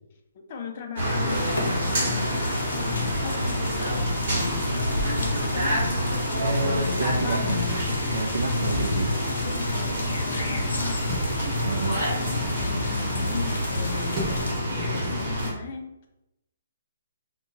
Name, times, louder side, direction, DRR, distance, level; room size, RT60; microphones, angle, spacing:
voice 1, 0.3-6.0 6.6-7.7 9.4-11.1 12.4-16.1, left 5 dB, 35° left, 3 dB, 0.4 m, -37 dB
sound 1, 1.0-15.5, equal, 40° right, 1.3 m, -27 dB
sound 2, 1.3-14.5, left 2 dB, 90° left, 0.7 m, -33 dB
voice 2, 6.4-7.6 8.1-9.2 11.6-12.1, right 2 dB, 80° right, 3 dB, 0.4 m, -29 dB
sound 3, 7.8-13.1 13.6-14.8, right 1 dB, 15° right, 0.7 m, -39 dB
2.9 x 2.2 x 2.7 m, 0.91 s
hypercardioid pair, 170°, 0 cm